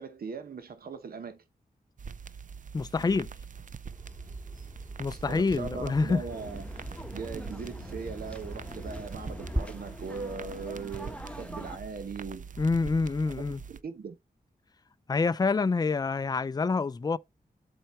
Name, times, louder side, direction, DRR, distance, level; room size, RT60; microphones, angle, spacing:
voice 1, 0.0-1.4 5.1-6.7 7.1-12.4 13.7-14.2, right 5 dB, 70° right, 1.0 m, -39 dB
sound 1, 2.0-13.8, right 6 dB, 55° right, 0.5 m, -44 dB
voice 2, 2.7-3.3 5.0-6.2 12.6-13.6 15.1-17.2, left 4 dB, 25° left, 0.4 m, -27 dB
Bird vocalization bird call bird song, 3.9-9.6, equal, 20° right, 1.8 m, -40 dB
sound 2, 6.3-11.8, equal, 5° left, 0.9 m, -45 dB
7.8 x 4.4 x 4.3 m
wide cardioid pair, 75°, 16 cm